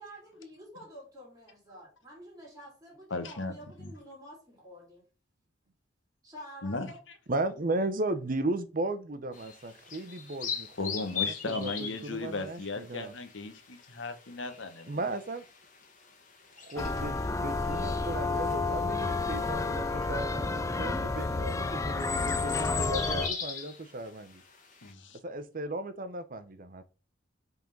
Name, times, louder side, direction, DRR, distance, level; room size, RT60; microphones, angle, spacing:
voice 1, 0.0-5.0 6.2-7.0, equal, 20° right, 2.9 m, -49 dB
voice 2, 3.1-3.5 3.8-3.9 6.6-6.9 10.8-15.1 24.8-25.2, left 3 dB, 70° left, 1.1 m, -36 dB
voice 3, 7.3-13.1 14.9-15.4 16.6-24.4 25.2-26.8, right 2 dB, 45° right, 0.7 m, -36 dB
sound 1, 9.3-24.9, left 7 dB, 40° left, 1.5 m, -40 dB
sound 2, 16.8-23.3, left 3 dB, 15° left, 0.4 m, -30 dB
5.4 x 3.8 x 5.3 m
head